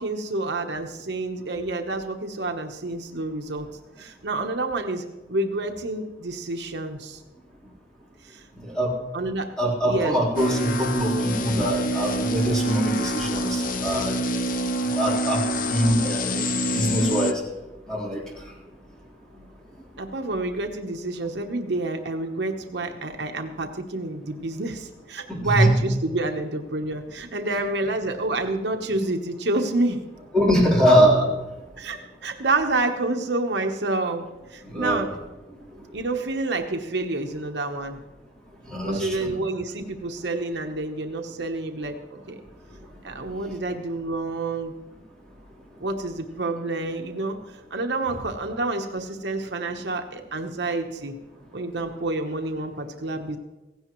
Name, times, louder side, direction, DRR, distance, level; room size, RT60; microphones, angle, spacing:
voice 1, 0.0-3.7 4.0-7.2 8.2-8.4 9.1-9.5 9.9-10.2 20.0-30.0 31.8-35.1 35.9-38.0 38.8-42.4 43.0-44.7 45.8-47.4 47.7-51.1 51.5-53.4, right 2 dB, 70° right, 4 dB, 1.1 m, -28 dB
voice 2, 8.6-8.9 9.6-14.2 14.9-15.4 15.7-17.4 17.9-18.2 25.3-25.7 30.3-31.3 34.7-35.1 38.7-39.3, equal, 5° left, -5 dB, 3.8 m, -23 dB
sound 1, 10.4-17.3, equal, 50° left, 0.7 m, -26 dB
16.5 x 16.0 x 3.1 m, 1.1 s
head